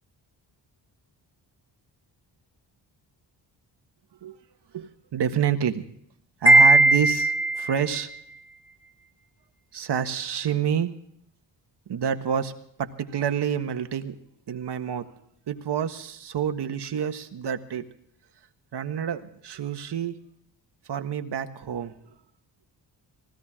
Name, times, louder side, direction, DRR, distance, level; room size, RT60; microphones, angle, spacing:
voice 1, 4.7-5.8 6.4-8.1 9.7-10.9 11.9-12.5 12.8-14.2 14.5-15.1 15.5-17.8 18.7-20.2 20.9-21.9, right 8 dB, 65° right, 7 dB, 1.6 m, -28 dB
Wind chime, 6.5-7.8, right 2 dB, 15° left, 2.9 m, -17 dB
19.5 x 17.0 x 3.7 m, 0.71 s
cardioid pair, 85°, 43 cm